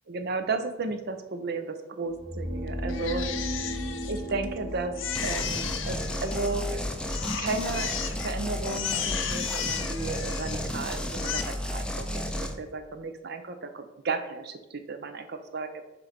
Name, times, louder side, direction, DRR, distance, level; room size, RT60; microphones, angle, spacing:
voice 1, 0.1-3.6 4.1-5.0 5.2-6.8 7.2-8.0 8.2-15.8, right 3 dB, 55° right, 8 dB, 0.6 m, -34 dB
sound 1, 2.0-8.0, equal, 25° right, 1.7 m, -36 dB
Crying sobbing, 2.9-4.6 5.0-6.7 7.1-8.3 8.6-10.7 11.1-11.4, left 9 dB, 80° left, 0.5 m, -34 dB
sound 2, 5.2-12.5, left 1 dB, 5° left, 0.4 m, -32 dB
7.3 x 2.6 x 5.0 m, 1.0 s
head